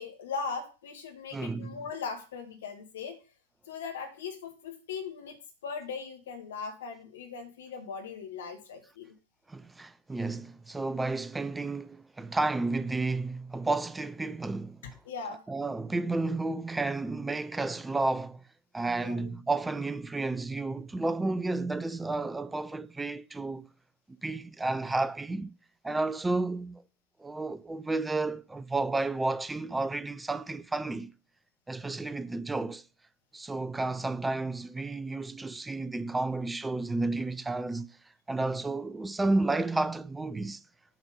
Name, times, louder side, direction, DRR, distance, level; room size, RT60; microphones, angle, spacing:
voice 1, 0.0-3.2 3.7-5.4 5.6-9.1 15.1-15.4 19.0-19.3, left 5 dB, 60° left, 2.0 m, -39 dB
voice 2, 1.3-1.8 9.5-14.8 15.5-18.4 18.7-23.7 24.2-25.5 25.8-26.8 27.2-31.1 31.7-32.8 33.3-37.9 38.3-40.6, right 2 dB, 10° right, 0.4 m, -31 dB
7.8 x 5.1 x 5.4 m
figure-of-eight pair, 90°, 0 cm